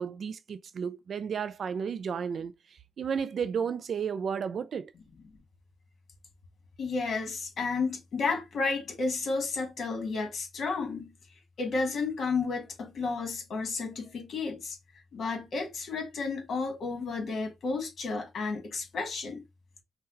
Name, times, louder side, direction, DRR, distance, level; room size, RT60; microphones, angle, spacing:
voice 1, 0.0-2.5 3.0-4.9, right 7 dB, 60° right, 0.3 m, -32 dB
voice 2, 6.8-11.1 11.6-14.8 15.1-19.4, left 4 dB, 60° left, 1.6 m, -32 dB
5.5 x 2.2 x 2.6 m
cardioid pair, 100°, 0 cm